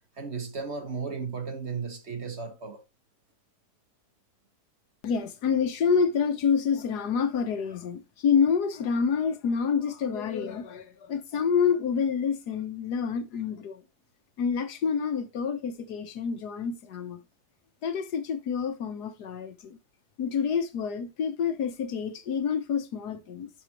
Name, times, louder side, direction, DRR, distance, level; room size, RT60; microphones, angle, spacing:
voice 1, 0.2-2.8, right 5 dB, 45° right, 1.6 m, -35 dB
voice 2, 5.0-13.8 14.4-17.2 17.8-19.8 20.2-23.5, left 6 dB, 85° left, 1.6 m, -28 dB
11.5 x 6.1 x 3.0 m
omnidirectional pair, 1.7 m